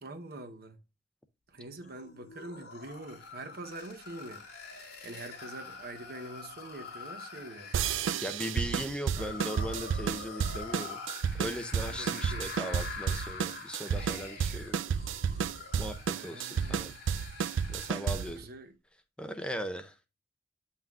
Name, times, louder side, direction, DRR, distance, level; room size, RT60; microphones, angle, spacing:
voice 1, 0.0-0.8 1.5-4.5 5.0-7.7 8.1-8.7 9.1-9.4 11.9-12.5 16.2-17.0 18.3-18.7, right 2 dB, 55° right, 0.9 m, -45 dB
sound 1, 1.8-18.4, left 4 dB, 55° left, 2.9 m, -45 dB
sound 2, 7.7-18.4, right 7 dB, 90° right, 0.3 m, -32 dB
voice 2, 8.2-11.0 11.4-14.8 15.8-16.9 17.7-18.4 19.2-20.0, equal, 5° left, 0.5 m, -38 dB
9.0 x 5.6 x 2.3 m
head